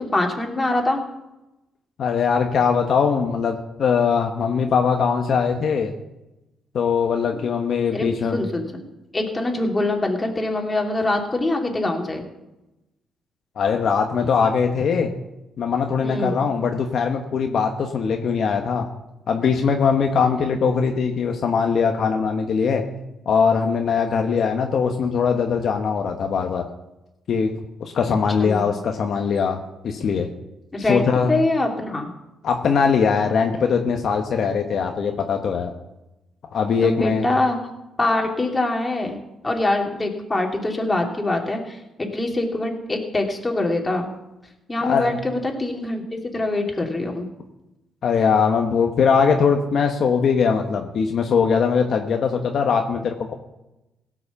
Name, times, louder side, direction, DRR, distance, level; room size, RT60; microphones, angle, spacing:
voice 1, 0.1-1.0 7.9-8.8 9.1-12.2 16.0-16.3 28.4-28.7 30.7-32.1 36.8-37.6 38.0-39.2 39.4-44.1 44.7-47.3, left 2 dB, 20° left, 2 dB, 2.7 m, -24 dB
voice 2, 2.0-5.9 6.7-8.4 13.6-15.1 15.6-18.9 19.3-22.8 23.2-26.6 27.3-27.5 27.8-29.6 29.8-30.3 30.8-31.3 32.4-35.7 36.5-37.3 44.9-45.2 48.0-53.3, left 6 dB, 60° left, 3 dB, 1.2 m, -21 dB
17.0 x 6.3 x 7.1 m, 0.95 s
cardioid pair, 90°, 0 cm